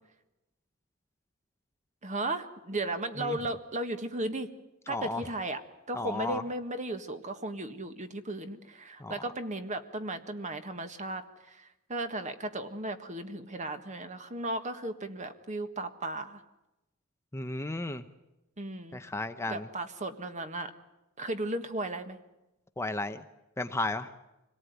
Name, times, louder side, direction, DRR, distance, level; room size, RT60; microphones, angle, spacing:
voice 1, 2.0-4.5 4.9-5.6 5.9-11.2 11.5-16.4 18.6-19.0 19.5-20.7 21.2-22.2, right 2 dB, 35° right, 8 dB, 1.6 m, -35 dB
voice 2, 4.9-5.2 5.9-6.4 9.0-9.2 17.3-18.0 18.9-19.7 22.8-23.2 23.6-24.1, left 2 dB, 15° left, 8 dB, 0.8 m, -34 dB
25.5 x 18.0 x 9.5 m, 0.98 s
head